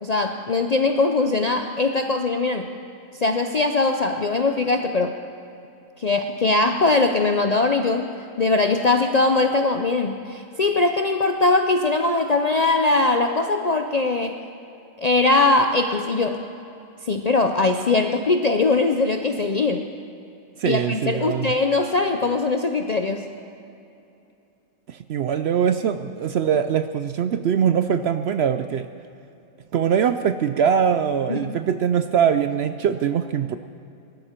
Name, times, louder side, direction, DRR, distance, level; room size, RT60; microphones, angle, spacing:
voice 1, 0.0-2.7 3.2-5.1 6.0-8.1 8.4-14.4 15.0-16.4 17.1-19.8 20.7-23.3 31.3-31.5, left 3 dB, 50° left, 5 dB, 0.5 m, -21 dB
voice 2, 20.6-21.6 24.9-28.9 29.7-33.6, right 8 dB, 65° right, 10 dB, 0.7 m, -22 dB
20.5 x 13.0 x 4.4 m, 2.7 s
omnidirectional pair, 1.4 m